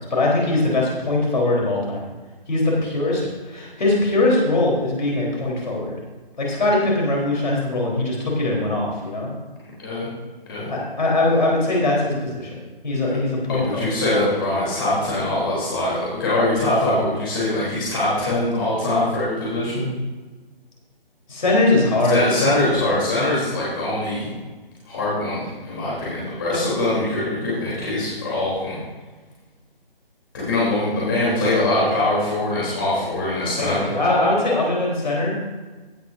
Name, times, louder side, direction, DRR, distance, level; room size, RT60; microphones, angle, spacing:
voice 1, 0.0-2.0 2.5-3.2 3.5-5.9 6.4-9.3 10.7-12.5 12.8-13.9 21.3-22.3 33.6-35.4, left 2 dB, 50° left, -3 dB, 3.9 m, -21 dB
voice 2, 13.5-19.9 22.1-24.3 24.8-28.8 30.3-33.9, left 1 dB, 25° left, -8 dB, 3.3 m, -22 dB
16.5 x 8.7 x 2.6 m, 1.3 s
figure-of-eight pair, 160°, 29 cm